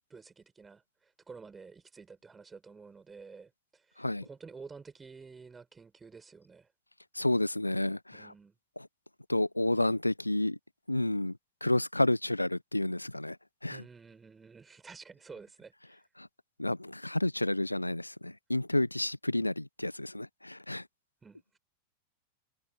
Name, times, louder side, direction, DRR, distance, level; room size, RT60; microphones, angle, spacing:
voice 1, 0.1-6.7 8.1-8.5 13.7-16.0 21.2-21.6, right 5 dB, 15° right, 7.2 m, -51 dB
voice 2, 7.1-8.3 8.8-8.9 9.3-10.6 10.9-11.3 11.6-13.4 13.6-13.8 16.2-16.3 16.6-20.8, left 1 dB, 85° left, 0.9 m, -30 dB
figure-of-eight pair, 90°, 0 cm